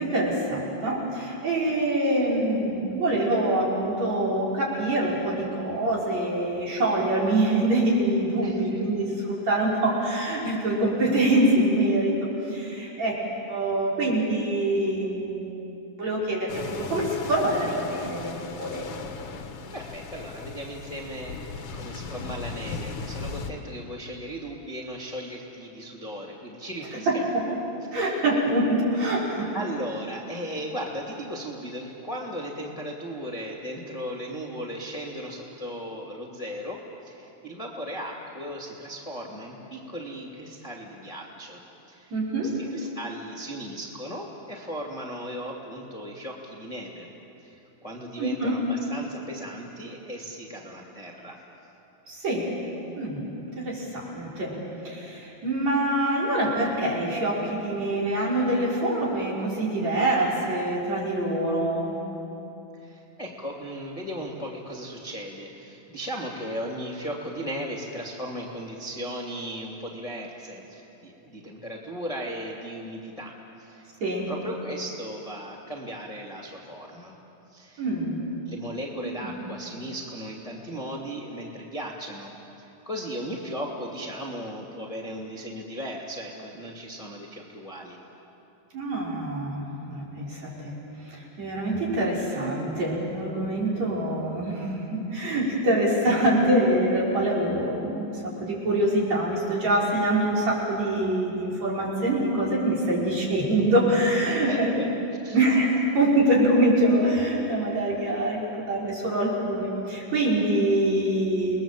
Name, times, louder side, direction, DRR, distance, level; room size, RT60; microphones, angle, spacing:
voice 1, 0.0-12.1 12.4-13.2 13.5-15.5 16.0-18.9 27.1-27.4 27.9-29.5 42.1-42.5 48.2-48.6 52.1-52.5 53.0-53.3 53.6-54.6 54.8-62.0 74.0-74.3 77.8-78.2 79.0-79.4 88.7-90.8 91.0-104.7 105.3-111.6, right 1 dB, 65° right, -5 dB, 6.2 m, -25 dB
voice 2, 8.4-8.8 19.7-21.4 21.7-27.3 27.9-28.2 29.5-41.6 41.9-42.1 42.4-47.1 47.4-51.4 62.7-73.9 74.3-77.1 77.5-77.8 78.5-88.0 104.4-105.4, equal, 15° left, -2 dB, 2.1 m, -36 dB
sound 1, 16.5-23.5, left 4 dB, 55° left, 2.0 m, -37 dB
29.5 x 21.0 x 7.5 m, 2.9 s
omnidirectional pair, 3.3 m